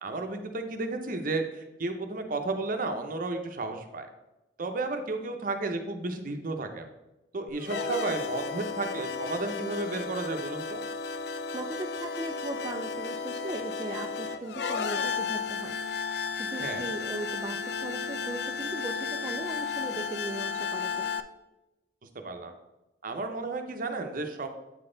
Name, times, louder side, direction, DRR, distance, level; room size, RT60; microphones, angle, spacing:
voice 1, 0.0-4.1 4.6-6.9 7.3-10.8 16.6-16.8 22.2-22.5 23.0-24.5, right 3 dB, 50° right, 6 dB, 0.7 m, -33 dB
sound 1, 7.5-21.2, left 5 dB, 65° left, 0.4 m, -33 dB
voice 2, 11.5-21.1, right 2 dB, 20° right, 2 dB, 0.3 m, -38 dB
8.6 x 4.0 x 3.8 m, 0.98 s
head